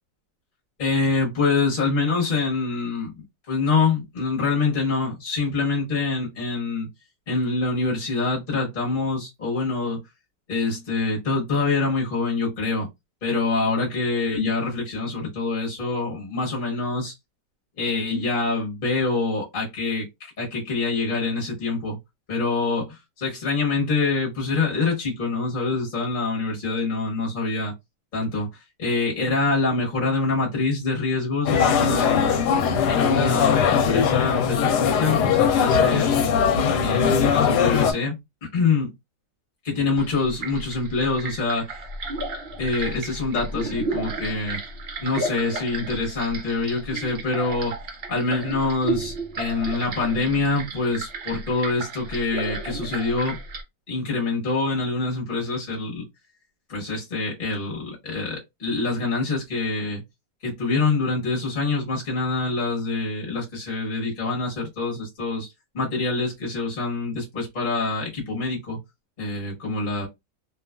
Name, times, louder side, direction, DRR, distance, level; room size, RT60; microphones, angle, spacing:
voice 1, 0.8-6.9 7.3-10.0 10.5-12.9 13.2-17.1 17.8-22.0 22.3-27.7 28.1-32.4 32.9-36.4 36.8-38.2 38.5-38.9 39.6-41.8 42.6-44.6 45.0-47.7 48.1-53.4 53.9-56.0 56.7-60.0 60.4-65.5 65.7-68.8 69.2-70.1, left 3 dB, 40° left, 0.9 m, -25 dB
sound 1, 31.5-37.9, left 7 dB, 75° left, 1.1 m, -20 dB
sound 2, 40.0-53.6, right 2 dB, 65° right, 0.5 m, -33 dB
2.7 x 2.3 x 2.2 m
omnidirectional pair, 1.9 m